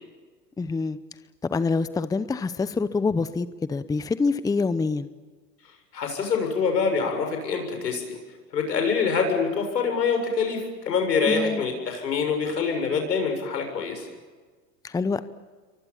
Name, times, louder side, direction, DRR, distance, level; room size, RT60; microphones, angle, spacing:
voice 1, 0.6-1.0 1.4-5.1 11.3-11.6 14.8-15.2, left 4 dB, 10° left, 14 dB, 0.8 m, -26 dB
voice 2, 5.9-8.2 8.5-14.1, left 5 dB, 90° left, 4 dB, 7.2 m, -25 dB
28.0 x 24.0 x 7.3 m, 1.4 s
hypercardioid pair, 105°, 48 cm